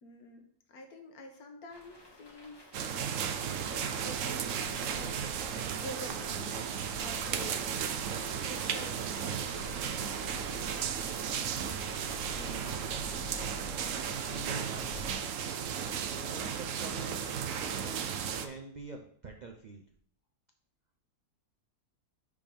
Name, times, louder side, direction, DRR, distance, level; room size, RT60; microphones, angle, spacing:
voice 1, 0.0-2.7 3.4-5.3 5.8-7.9 8.2-9.6, left 1 dB, 70° left, 4 dB, 1.5 m, -48 dB
sound 1, 1.7-15.9, left 1 dB, 20° left, 0.7 m, -57 dB
sound 2, 2.7-18.5, right 7 dB, 65° right, 0.8 m, -35 dB
sound 3, 4.6-15.1, left 2 dB, 85° left, 1.3 m, -50 dB
voice 2, 12.3-12.8 14.0-15.1 16.1-18.1 18.4-19.8, right 3 dB, 85° right, 3 dB, 0.4 m, -46 dB
5.2 x 5.1 x 5.2 m, 0.62 s
omnidirectional pair, 1.7 m